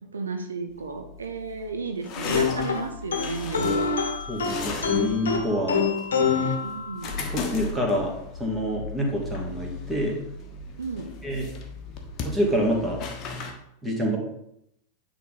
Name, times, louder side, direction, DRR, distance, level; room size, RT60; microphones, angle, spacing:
voice 1, 0.0-4.0 6.6-7.1 10.8-11.1, right 4 dB, 70° right, 5 dB, 0.7 m, -33 dB
sound 1, 0.7-13.5, left 4 dB, 30° left, 1.3 m, -37 dB
sound 2, 2.3-7.3, left 5 dB, 65° left, 1.0 m, -26 dB
voice 2, 4.3-5.9 6.2-6.5 7.2-8.1 8.4-10.1 11.2-11.5 12.2-13.0 13.3-13.4 13.8-14.2, equal, 5° right, -2 dB, 2.2 m, -27 dB
9.4 x 4.1 x 5.1 m, 0.77 s
figure-of-eight pair, 90°, 0 cm